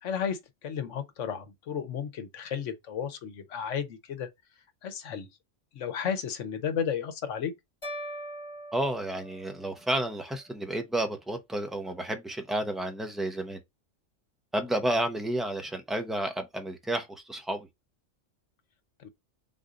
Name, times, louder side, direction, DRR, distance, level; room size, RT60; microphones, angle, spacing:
voice 1, 0.0-4.3 4.8-5.3 5.7-7.5 19.0-19.1, left 7 dB, 80° left, 1.2 m, -33 dB
sound 1, 7.8-10.1, equal, 25° left, 1.1 m, -41 dB
voice 2, 8.7-13.6 14.5-17.7, right 1 dB, ahead, 0.6 m, -31 dB
4.0 x 2.7 x 4.8 m
omnidirectional pair, 1.3 m